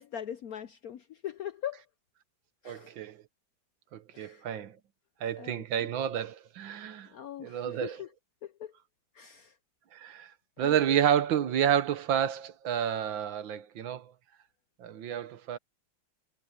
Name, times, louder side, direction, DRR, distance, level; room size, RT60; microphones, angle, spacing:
voice 1, 0.0-1.8 2.6-2.9 4.1-4.5 5.4-5.9 7.1-8.1 8.4-8.7 9.1-9.5 10.6-10.8, left 10 dB, 70° left, 0.9 m, -41 dB
voice 2, 2.7-3.2 3.9-4.8 5.2-7.1 7.4-8.0 9.9-10.3 10.6-14.1 14.8-15.6, right 9 dB, 75° right, 1.7 m, -30 dB
omnidirectional pair, 2.2 m